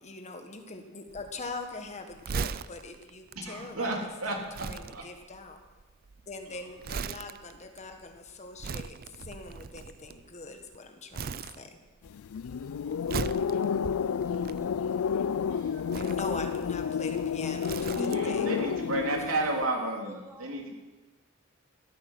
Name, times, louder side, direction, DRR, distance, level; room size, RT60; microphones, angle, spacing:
voice 1, 0.0-5.6 6.3-11.8 15.9-18.5, left 3 dB, 35° left, 5 dB, 1.6 m, -42 dB
Crumpling crinkling, 1.1-10.7 11.1-12.1 12.4-15.1 15.8-18.4 18.7-18.9, right 5 dB, 45° right, 0.4 m, -39 dB
voice 2, 3.3-5.0 15.5-15.8 17.9-20.7, right 2 dB, 75° right, 0 dB, 3.5 m, -32 dB
sound 1, 12.1-19.7, left 7 dB, 75° left, 0.4 m, -30 dB
voice 3, 14.1-15.7 20.0-20.6, right 3 dB, 15° right, 3 dB, 0.8 m, -53 dB
17.5 x 13.0 x 5.7 m, 1.2 s
head